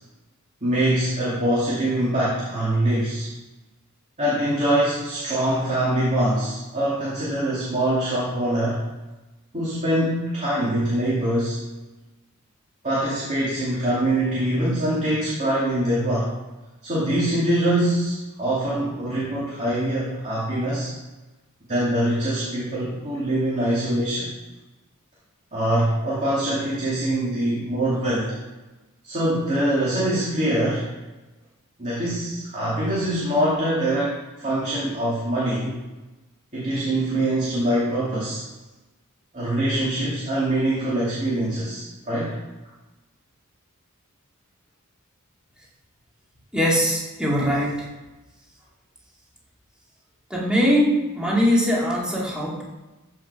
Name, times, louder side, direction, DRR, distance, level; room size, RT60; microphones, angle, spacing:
voice 1, 0.6-3.3 4.2-8.8 9.5-11.6 12.8-16.3 16.8-20.9 21.7-24.3 25.5-28.4 29.0-30.9 31.8-35.8 36.5-38.4 39.3-42.3, right 1 dB, 35° right, -8 dB, 2.7 m, -23 dB
voice 2, 46.5-47.9 50.3-52.6, equal, 5° right, -4 dB, 2.1 m, -21 dB
13.5 x 5.3 x 5.0 m, 1.1 s
head